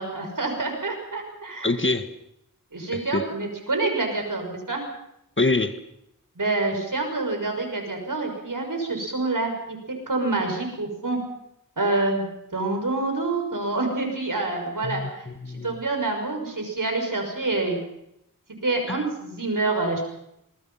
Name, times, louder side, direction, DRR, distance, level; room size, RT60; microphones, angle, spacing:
voice 1, 0.0-1.7 2.7-4.8 6.4-9.8 10.1-11.2 11.8-12.2 12.5-15.3 15.6-17.8 18.6-20.0, right 2 dB, 65° right, 3 dB, 6.5 m, -27 dB
voice 2, 1.6-2.1 2.9-3.2 5.4-5.7 14.8-15.8 18.9-19.1, left 2 dB, 35° left, 9 dB, 1.6 m, -25 dB
26.5 x 21.0 x 5.8 m, 0.80 s
wide cardioid pair, 50°, 34 cm